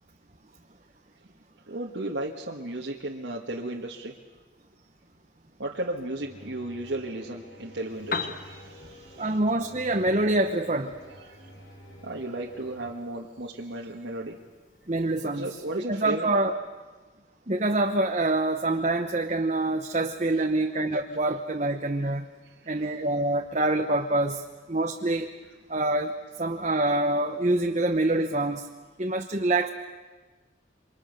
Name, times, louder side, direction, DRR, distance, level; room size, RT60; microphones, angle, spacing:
voice 1, 1.7-4.1 5.6-9.4 11.2-11.5 12.0-14.4 15.2-16.3 22.6-22.9, right 1 dB, 75° right, -1 dB, 1.7 m, -35 dB
sound 1, 6.2-12.9, left 1 dB, 80° left, 6.9 m, -49 dB
Piano, 7.9-15.9, left 4 dB, 45° left, 1.4 m, -42 dB
voice 2, 9.2-10.9 14.9-15.5 15.9-16.5 17.5-22.3 22.7-24.4 24.7-25.3 25.7-26.1 26.4-28.7 29.0-29.7, right 2 dB, 35° right, 3 dB, 1.1 m, -25 dB
29.0 x 25.5 x 6.7 m, 1.3 s
head